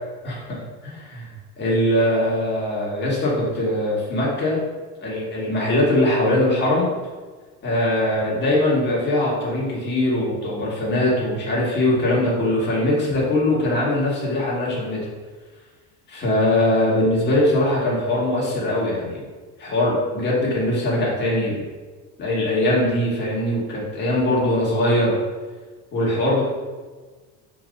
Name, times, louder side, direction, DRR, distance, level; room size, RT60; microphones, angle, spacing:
voice 1, 0.2-4.6 5.0-6.9 7.6-15.0 16.1-19.2 19.6-21.6 22.2-25.1 25.9-26.4, left 1 dB, 30° left, -5 dB, 1.9 m, -21 dB
4.6 x 3.9 x 5.3 m, 1.4 s
cardioid pair, 165°, 33 cm